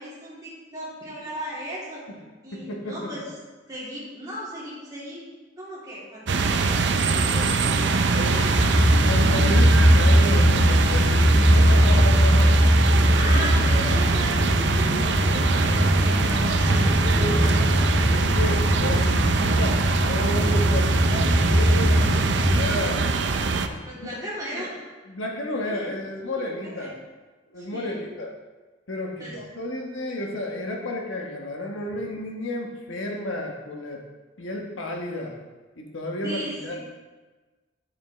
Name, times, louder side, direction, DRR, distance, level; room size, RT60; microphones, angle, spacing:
voice 1, 0.0-2.0 2.4-3.3 3.7-5.2 5.6-7.5 8.4-8.7 13.1-17.9 23.9-24.7 25.6-26.0 26.3-26.9 27.6-28.0 29.2-29.4 36.2-36.8, equal, 20° right, -8 dB, 3.1 m, -36 dB
voice 2, 2.5-3.1 8.1-8.6 9.1-12.7 14.8-15.1 18.1-23.1 23.7-24.2 24.5-24.7 25.1-27.0 27.5-28.3 28.9-34.0 34.4-35.4 35.8-36.8, left 1 dB, 85° left, 1 dB, 1.3 m, -32 dB
sound 1, 6.3-23.7, right 4 dB, 60° right, 0.6 m, -23 dB
sound 2, 8.5-22.6, equal, 20° left, 1.8 m, -20 dB
10.5 x 7.7 x 3.3 m, 1.3 s
head